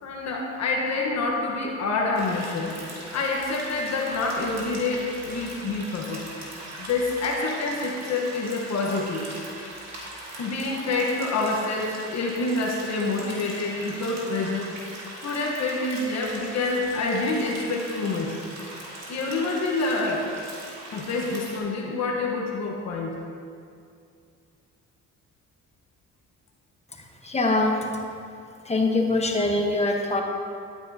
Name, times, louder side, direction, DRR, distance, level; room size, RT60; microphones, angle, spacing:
voice 1, 0.0-2.8 3.1-6.2 6.8-9.2 10.4-14.9 15.2-18.4 19.1-20.2 20.9-23.2, left 3 dB, 60° left, -1 dB, 1.2 m, -27 dB
sound 1, 2.1-21.6, right 1 dB, 60° right, 1.9 m, -40 dB
voice 2, 27.2-27.9 28.6-30.2, left 2 dB, 20° left, 1 dB, 1.1 m, -23 dB
11.0 x 9.4 x 2.8 m, 2.4 s
cardioid pair, 90°, 30 cm